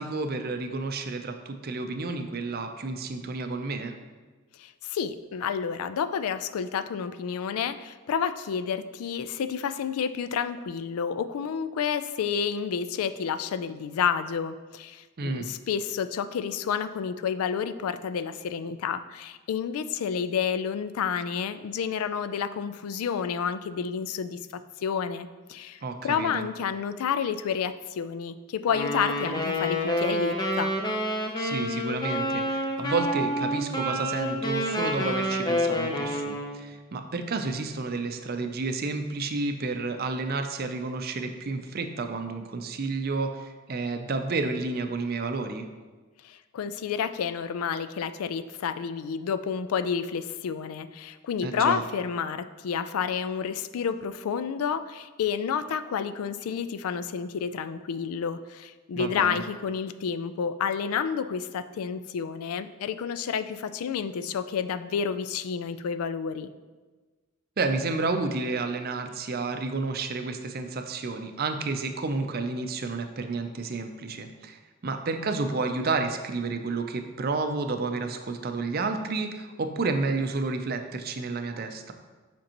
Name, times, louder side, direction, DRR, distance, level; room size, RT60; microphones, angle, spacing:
voice 1, 0.0-4.0 15.2-15.5 25.8-26.5 31.4-45.7 51.4-51.8 59.0-59.4 67.6-81.9, right 3 dB, 45° right, 7 dB, 0.5 m, -31 dB
voice 2, 4.6-30.7 46.2-66.5, left 7 dB, 85° left, 12 dB, 0.3 m, -30 dB
Wind instrument woodwind instrument, 28.7-36.7, equal, 20° left, 0.6 m, -28 dB
7.7 x 5.2 x 2.9 m, 1.3 s
head